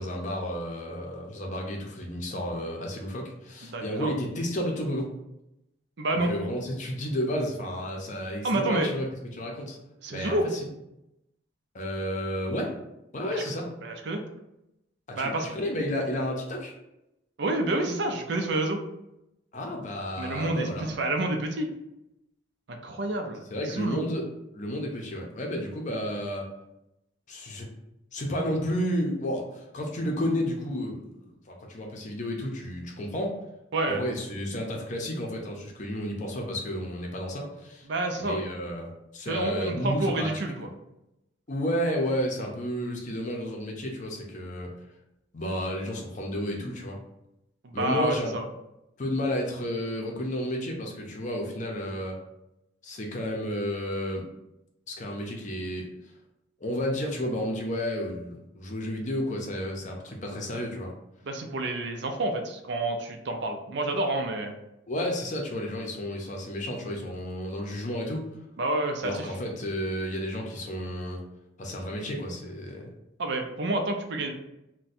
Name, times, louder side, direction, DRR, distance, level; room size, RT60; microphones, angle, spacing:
voice 1, 0.0-5.1 6.2-9.1 9.3-9.8 10.1-10.6 11.7-12.7 13.1-13.7 15.1-16.7 19.5-20.9 23.5-24.2 24.5-26.5 27.3-27.7 28.1-33.4 33.9-37.9 38.2-40.4 41.5-44.7 45.3-47.0 47.7-48.3 49.0-52.2 52.8-54.2 54.9-55.9 56.6-60.9 64.9-68.3 69.0-71.2 71.6-72.9, equal, 40° left, 1 dB, 0.6 m, -32 dB
voice 2, 3.6-4.1 6.0-6.3 8.4-8.9 10.0-10.4 13.3-13.4 13.8-14.2 15.1-15.5 17.4-18.8 20.2-21.7 22.7-24.0 33.7-34.0 37.9-38.4 39.3-40.7 47.6-48.5 61.2-64.5 68.6-69.3 73.2-74.3, right 2 dB, 65° right, 4 dB, 0.5 m, -29 dB
2.6 x 2.2 x 4.1 m, 0.88 s
head